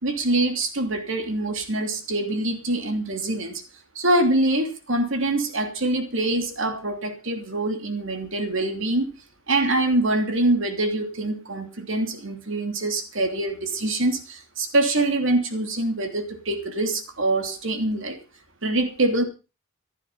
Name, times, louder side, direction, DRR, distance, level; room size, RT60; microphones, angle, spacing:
voice 1, 0.0-3.6 3.9-9.1 9.5-18.2 18.6-19.2, right 2 dB, 60° right, 3.0 m, -24 dB
16.0 x 11.5 x 5.5 m
head